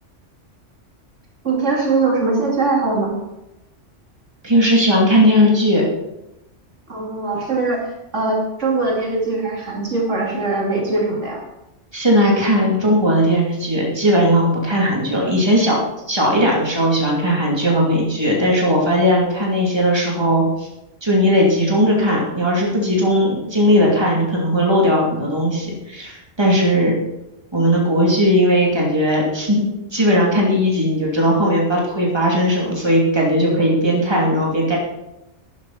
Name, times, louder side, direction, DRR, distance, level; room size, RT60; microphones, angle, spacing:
voice 1, 1.4-3.2 6.9-11.4, right 3 dB, 85° right, -1 dB, 2.8 m, -21 dB
voice 2, 4.4-5.9 11.9-15.8 16.1-20.7 21.0-26.9 27.5-34.8, equal, 20° right, -3 dB, 2.7 m, -17 dB
13.0 x 10.5 x 4.2 m, 0.91 s
omnidirectional pair, 1.2 m